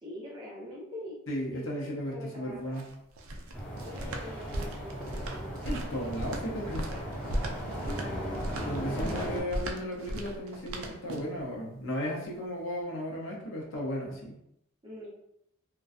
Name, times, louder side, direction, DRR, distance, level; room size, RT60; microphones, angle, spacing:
voice 1, 0.0-1.2 1.5-2.9 3.8-5.5 7.9-8.5 14.8-15.1, left 1 dB, 20° right, -6 dB, 0.7 m, -44 dB
voice 2, 1.3-2.9 5.7-6.9 8.6-14.4, equal, 60° left, -2 dB, 0.6 m, -35 dB
sound 1, 2.5-11.4, right 1 dB, 70° right, 0.4 m, -37 dB
sound 2, 3.5-9.4, equal, 5° left, 0.9 m, -37 dB
2.5 x 2.2 x 2.4 m, 0.78 s
head